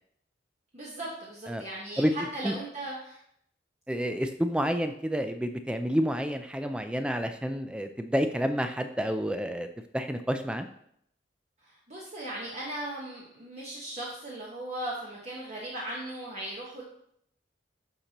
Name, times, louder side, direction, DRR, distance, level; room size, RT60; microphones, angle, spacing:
voice 1, 0.7-3.2 11.6-16.8, right 1 dB, 40° right, -5 dB, 1.3 m, -38 dB
voice 2, 3.9-9.7 9.9-10.7, equal, 5° right, 7 dB, 0.3 m, -29 dB
11.5 x 4.3 x 2.9 m, 0.70 s
head